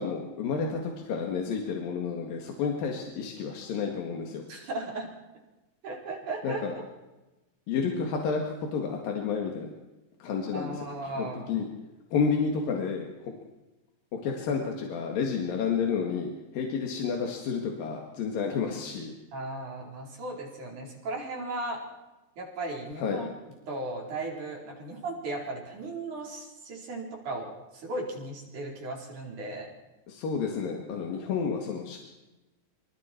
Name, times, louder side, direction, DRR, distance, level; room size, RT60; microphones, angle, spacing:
voice 1, 0.0-4.4 6.4-6.7 7.7-9.7 10.2-10.8 11.1-11.7 12.1-13.3 14.1-19.1 23.0-23.2 30.1-32.0, left 5 dB, 85° left, 1 dB, 3.8 m, -30 dB
voice 2, 4.5-5.1 5.8-6.6 10.5-11.6 19.3-21.8 22.4-23.3 23.7-29.7, right 2 dB, 60° right, -1 dB, 5.8 m, -36 dB
27.0 x 26.5 x 4.6 m, 1.0 s
omnidirectional pair, 3.9 m